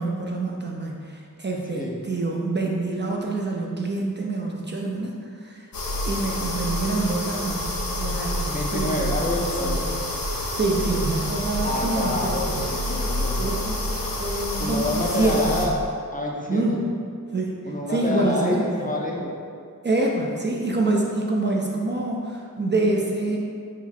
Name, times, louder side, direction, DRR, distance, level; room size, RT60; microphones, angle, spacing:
voice 1, 0.0-5.7 6.0-7.7 7.9-8.4 8.7-9.2 9.6-9.8 10.3-12.6 13.4-15.7 16.5-16.9 17.3-17.6 17.9-18.7 19.8-23.4, right 2 dB, 30° right, -1 dB, 0.4 m, -26 dB
sound 1, 5.7-15.7, left 1 dB, 75° left, 0.7 m, -28 dB
voice 2, 8.5-9.8 11.6-13.6 14.6-15.8 16.1-16.8 17.6-19.4, left 1 dB, 25° left, -1 dB, 0.5 m, -28 dB
3.7 x 2.3 x 4.4 m, 2.3 s
wide cardioid pair, 80°, 35 cm